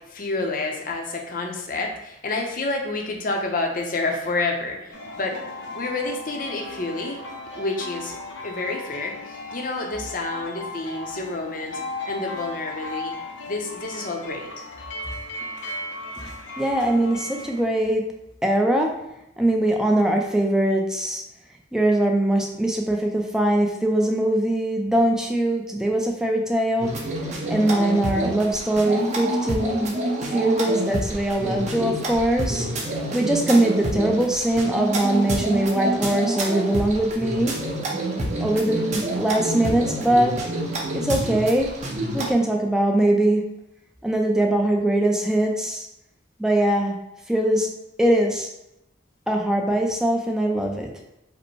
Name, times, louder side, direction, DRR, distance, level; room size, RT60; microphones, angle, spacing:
voice 1, 0.1-5.4 5.7-7.2 7.5-8.2 8.4-11.8 12.1-13.1 13.5-14.6, left 2 dB, 45° left, 1 dB, 0.7 m, -29 dB
sound 1, 4.9-17.6, left 2 dB, 75° left, 0.8 m, -36 dB
voice 2, 16.6-18.0 18.4-18.9 19.4-21.2 21.7-26.9 27.5-30.0 30.2-32.7 33.1-37.5 38.4-40.4 40.9-41.7 42.1-43.4 44.0-45.9 46.4-47.0 47.3-47.7 48.0-48.5 49.3-50.9, right 1 dB, 5° right, 0 dB, 0.5 m, -21 dB
sound 2, 26.8-42.3, right 1 dB, 35° right, 0.8 m, -27 dB
5.1 x 2.2 x 4.5 m, 0.87 s
head